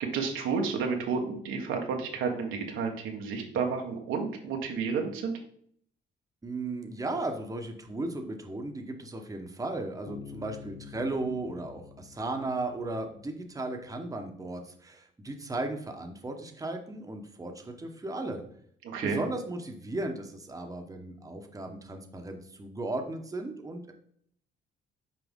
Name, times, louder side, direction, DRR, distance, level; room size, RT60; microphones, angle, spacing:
voice 1, 0.0-5.4 18.8-19.2, right 5 dB, 85° right, 2 dB, 1.2 m, -31 dB
voice 2, 6.4-18.4 19.0-23.9, right 2 dB, 15° right, 3 dB, 0.9 m, -36 dB
Bass guitar, 10.1-13.6, left 7 dB, 40° left, 0.7 m, -48 dB
6.1 x 4.6 x 3.6 m, 0.63 s
cardioid pair, 90°, 20 cm